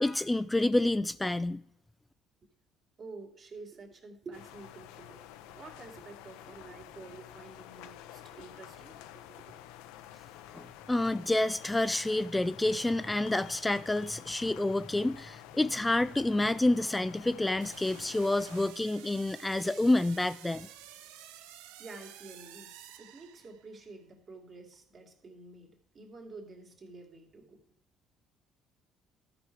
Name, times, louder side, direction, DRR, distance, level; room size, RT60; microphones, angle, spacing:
voice 1, 0.0-1.6 10.5-20.7, left 2 dB, 15° left, 0.4 m, -28 dB
voice 2, 3.0-9.4 18.4-18.6 21.8-27.6, right 3 dB, 50° right, 2.7 m, -49 dB
sound 1, 4.3-18.7, left 12 dB, 80° left, 0.5 m, -50 dB
sound 2, 17.6-23.8, right 11 dB, 80° right, 0.6 m, -51 dB
13.5 x 5.1 x 4.6 m
hypercardioid pair, 60°, 0 cm